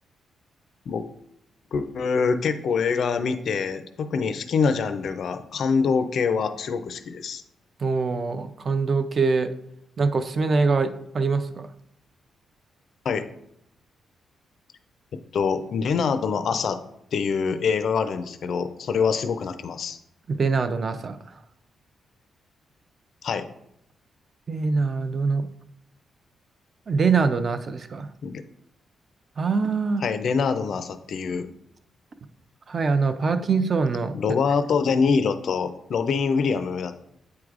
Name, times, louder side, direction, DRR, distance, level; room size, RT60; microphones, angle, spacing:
voice 1, 1.7-7.4 13.0-13.3 15.3-16.8 17.1-20.0 23.2-23.5 28.2-28.4 30.0-31.5 34.1-36.9, left 5 dB, 55° left, 10 dB, 0.4 m, -25 dB
voice 2, 7.8-9.5 10.0-11.7 20.3-21.2 24.5-25.5 26.9-28.1 29.4-30.0 32.7-34.1, right 4 dB, 35° right, 9 dB, 0.4 m, -23 dB
8.4 x 4.7 x 2.4 m, 0.75 s
wide cardioid pair, 160°, 0 cm